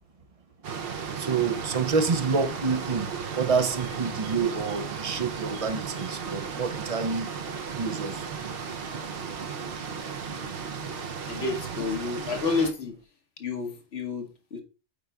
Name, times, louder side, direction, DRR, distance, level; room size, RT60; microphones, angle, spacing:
sound 1, 0.6-12.7, right 6 dB, 60° right, 0.8 m, -35 dB
voice 1, 1.2-7.3 7.7-8.3, right 5 dB, 45° right, 0.5 m, -28 dB
voice 2, 11.3-12.9 13.4-14.6, left 4 dB, 65° left, 1.3 m, -30 dB
8.4 x 4.9 x 2.3 m
omnidirectional pair, 1.1 m